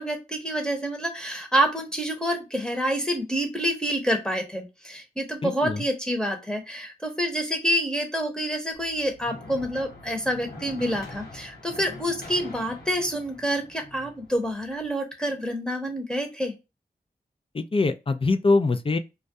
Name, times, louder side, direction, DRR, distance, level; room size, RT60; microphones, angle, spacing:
voice 1, 0.0-16.5, equal, 5° left, 0.8 m, -27 dB
voice 2, 5.4-5.8 17.5-19.0, left 3 dB, 35° left, 0.4 m, -23 dB
sound 1, 8.7-14.9, left 1 dB, 85° left, 0.8 m, -44 dB
2.3 x 2.1 x 2.6 m
cardioid pair, 50°, 16 cm